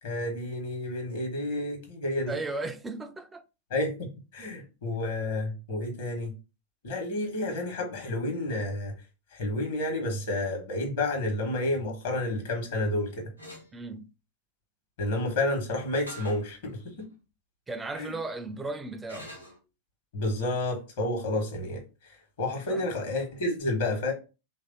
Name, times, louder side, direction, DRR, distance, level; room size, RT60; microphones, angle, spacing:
voice 1, 0.0-2.3 3.7-6.3 6.8-8.9 9.3-13.2 15.0-17.1 18.0-18.1 20.1-21.8 22.4-24.1, left 2 dB, 60° left, 1.3 m, -30 dB
voice 2, 2.3-3.4 13.7-14.0 17.7-19.3 22.7-22.9, right 3 dB, 10° right, 0.5 m, -36 dB
sound 1, 13.4-13.7 16.1-16.4 17.0-17.1 19.1-19.6, right 1 dB, 90° left, 1.1 m, -44 dB
3.2 x 2.6 x 3.9 m
figure-of-eight pair, 90°, 0 cm